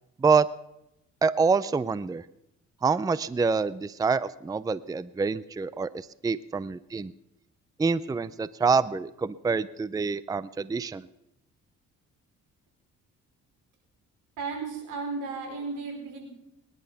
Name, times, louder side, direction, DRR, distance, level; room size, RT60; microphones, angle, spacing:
voice 1, 1.2-2.2 2.8-7.1 7.8-11.1, right 5 dB, 10° right, 17 dB, 0.4 m, -26 dB
voice 2, 14.4-16.3, right 4 dB, 85° right, 2 dB, 4.9 m, -34 dB
20.5 x 11.0 x 5.7 m, 0.85 s
cardioid pair, 90°, 30 cm